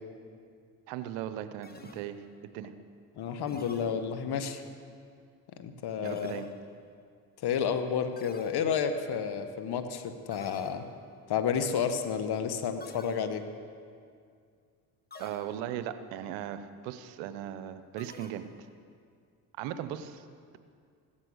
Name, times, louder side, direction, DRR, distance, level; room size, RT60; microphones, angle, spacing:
voice 1, 0.9-2.2 2.4-2.7 6.0-6.5 15.2-18.4 19.6-20.3, right 11 dB, 80° right, 11 dB, 1.0 m, -38 dB
sound 1, 1.6-2.5 3.5-4.5 6.0-6.9 8.2-9.2 10.3-11.2 12.8-13.7 15.1-15.9 18.0-18.8, left 3 dB, 20° left, 1.4 m, -51 dB
voice 2, 3.2-4.6 5.6-6.4 7.4-10.8 11.3-13.5, left 7 dB, 60° left, 9 dB, 1.5 m, -31 dB
16.5 x 13.0 x 6.4 m, 2.2 s
supercardioid pair, 65°, 44 cm